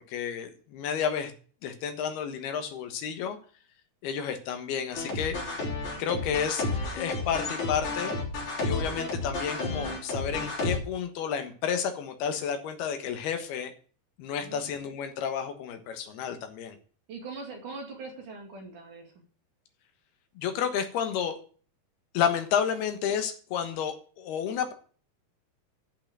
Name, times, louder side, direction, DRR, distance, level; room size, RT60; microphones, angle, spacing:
voice 1, 0.1-1.3 1.6-3.4 4.0-5.4 6.0-8.1 8.6-13.7 14.2-16.8 20.4-21.4 22.1-24.7, left 8 dB, 75° left, 7 dB, 3.3 m, -31 dB
sound 1, 4.9-10.8, left 2 dB, 50° left, 4.8 m, -32 dB
voice 2, 14.4-14.7 17.1-19.1, right 3 dB, 55° right, 2 dB, 3.7 m, -42 dB
11.5 x 5.8 x 8.8 m, 0.42 s
omnidirectional pair, 4.6 m